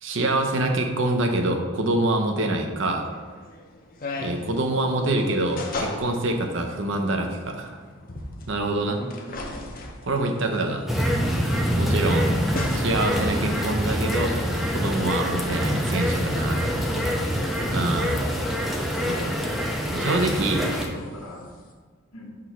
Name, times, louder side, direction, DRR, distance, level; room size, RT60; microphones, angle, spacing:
voice 1, 0.0-3.1 4.2-7.8 8.5-9.0 10.0-10.9 11.8-12.4 12.7-14.3 14.7-17.1 17.7-18.1 19.1-19.4 19.9-20.7, right 2 dB, 60° right, 4 dB, 0.7 m, -25 dB
sound 1, 3.0-21.7, left 2 dB, 40° left, 0.7 m, -40 dB
voice 2, 8.8-9.5 13.4-14.0 15.2-15.5 17.5-18.0 20.5-21.4 22.1-22.3, left 1 dB, 80° left, -2 dB, 1.4 m, -41 dB
sound 2, 10.9-20.9, equal, ahead, 0.5 m, -25 dB
6.0 x 3.1 x 5.8 m, 1.5 s
head